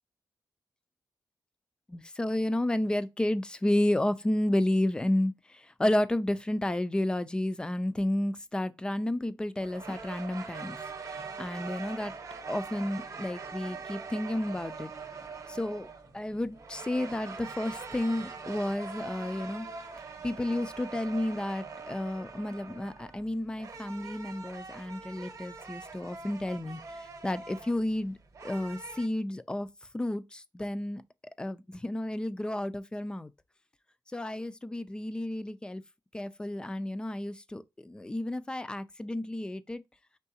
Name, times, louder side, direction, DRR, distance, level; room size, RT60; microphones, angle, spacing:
voice 1, 1.9-5.3 5.8-10.8 11.1-12.1 12.5-14.9 15.5-15.9 16.1-19.7 20.2-26.8 27.2-28.2 28.4-29.7 29.9-31.0 31.4-33.3 34.1-35.8 36.1-39.8, left 1 dB, 10° left, 0.3 m, -31 dB
sound 1, 9.6-29.1, right 4 dB, 50° right, 0.8 m, -43 dB
4.6 x 3.3 x 2.7 m
wide cardioid pair, 135°, 7 cm